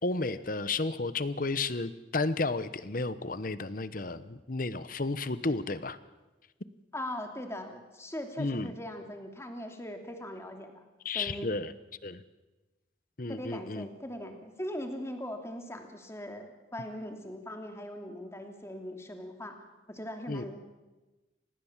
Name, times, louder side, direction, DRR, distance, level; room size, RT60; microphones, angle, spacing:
voice 1, 0.0-6.0 8.4-8.7 11.0-11.7 12.0-12.2 13.2-13.9 20.3-20.4, left 3 dB, 50° left, 14 dB, 1.0 m, -32 dB
voice 2, 6.9-10.8 11.1-11.6 13.3-19.6 19.9-20.6, left 1 dB, 15° left, 4 dB, 2.8 m, -40 dB
26.0 x 19.0 x 7.4 m, 1.1 s
head